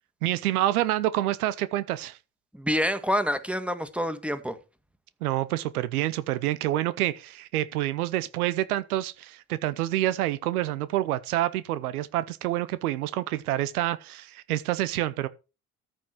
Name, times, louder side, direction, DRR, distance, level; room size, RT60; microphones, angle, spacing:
voice 1, 0.2-2.2 5.2-15.3, right 14 dB, 85° right, 0.7 m, -27 dB
voice 2, 2.5-4.6, equal, 5° right, 1.9 m, -27 dB
14.0 x 6.2 x 4.6 m
hypercardioid pair, 45°, 43 cm